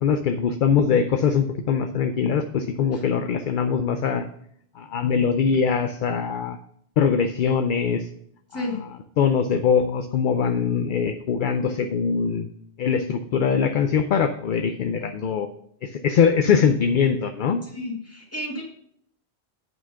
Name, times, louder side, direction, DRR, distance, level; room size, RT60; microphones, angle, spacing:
voice 1, 0.0-4.2 4.8-6.6 7.0-8.1 8.5-8.6 9.2-12.5 12.8-15.5 15.8-17.6, left 6 dB, 60° left, 8 dB, 0.6 m, -22 dB
voice 2, 8.5-8.8 17.6-18.6, left 1 dB, 15° left, -2 dB, 1.9 m, -32 dB
8.7 x 4.6 x 5.6 m, 0.70 s
omnidirectional pair, 1.1 m